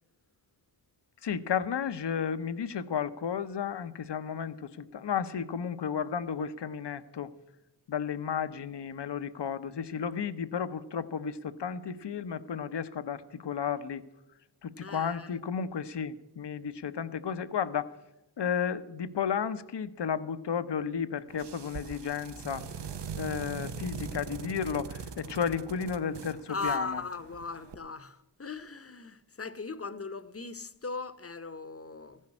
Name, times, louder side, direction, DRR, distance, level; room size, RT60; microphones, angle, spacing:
voice 1, 1.2-7.3 7.9-14.1 14.6-17.9 18.4-22.7 23.2-27.0, left 7 dB, 70° left, 0.8 m, -33 dB
voice 2, 14.8-15.3 26.5-32.2, left 3 dB, 35° left, 0.9 m, -38 dB
sound 1, 21.3-27.7, right 6 dB, 70° right, 0.8 m, -41 dB
15.0 x 6.5 x 9.7 m
cardioid pair, 45°, 43 cm